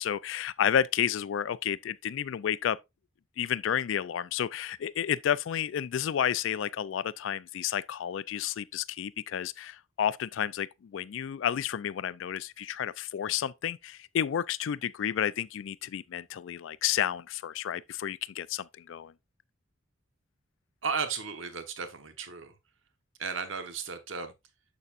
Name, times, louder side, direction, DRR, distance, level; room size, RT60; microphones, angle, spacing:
voice 1, 0.0-2.8 3.4-19.1, left 9 dB, 65° left, 0.3 m, -31 dB
voice 2, 20.8-22.5 23.2-24.3, right 5 dB, 70° right, 1.1 m, -34 dB
7.1 x 6.7 x 2.5 m
head